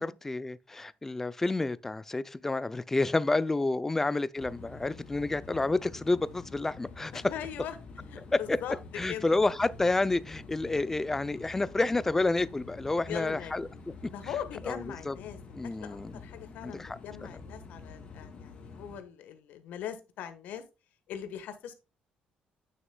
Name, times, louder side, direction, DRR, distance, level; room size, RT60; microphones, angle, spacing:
voice 1, 0.0-7.1 8.3-8.6 9.0-13.7 14.7-14.8 15.1-15.2 15.6-16.1 16.6-17.0, left 2 dB, 15° left, 0.4 m, -29 dB
sound 1, 4.4-19.0, left 4 dB, 45° left, 2.5 m, -48 dB
voice 2, 7.1-7.7 8.1-8.8 9.1-9.3 13.1-13.5 14.1-20.6 21.1-21.7, left 9 dB, 75° left, 1.3 m, -41 dB
9.3 x 6.4 x 2.2 m
cardioid pair, 135°, 3 cm